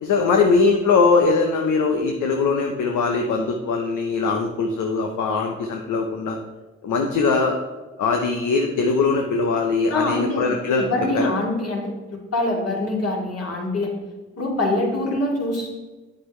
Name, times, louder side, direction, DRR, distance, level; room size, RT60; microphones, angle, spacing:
voice 1, 0.0-6.4 6.8-7.6 8.0-10.9 11.1-11.3, left 4 dB, 65° left, 3 dB, 0.9 m, -21 dB
voice 2, 9.9-10.4 10.8-11.9 12.3-13.9 14.4-15.8, left 2 dB, 50° left, -2 dB, 2.9 m, -24 dB
8.9 x 7.6 x 3.2 m, 1.2 s
supercardioid pair, 50°, 32 cm